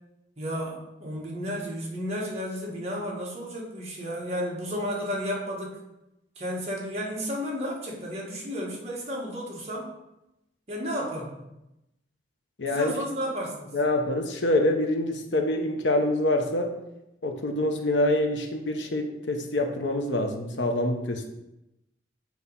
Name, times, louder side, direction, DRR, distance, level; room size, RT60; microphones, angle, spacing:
voice 1, 0.4-5.8 6.4-9.9 10.7-11.3 12.7-13.7, equal, 35° right, -3 dB, 1.5 m, -32 dB
voice 2, 12.6-12.9 13.7-16.7 17.2-21.3, left 1 dB, 85° left, 4 dB, 0.9 m, -26 dB
7.9 x 3.1 x 5.4 m, 0.91 s
head